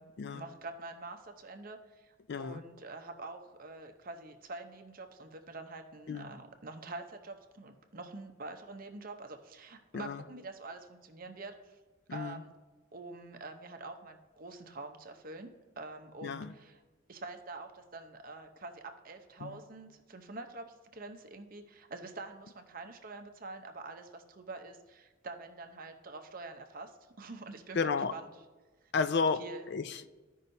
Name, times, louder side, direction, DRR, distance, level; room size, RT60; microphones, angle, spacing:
voice 1, 0.0-11.8 12.1-12.5 12.9-15.5 15.8-16.8 17.1-28.3 29.4-29.7, right 3 dB, 45° right, 0.7 m, -46 dB
voice 2, 2.3-2.6 6.1-6.3 9.9-10.2 12.1-12.4 16.2-16.5 19.4-19.6 27.7-28.1 28.9-29.4 29.7-30.1, left 5 dB, 55° left, 0.4 m, -32 dB
14.5 x 5.5 x 2.7 m
head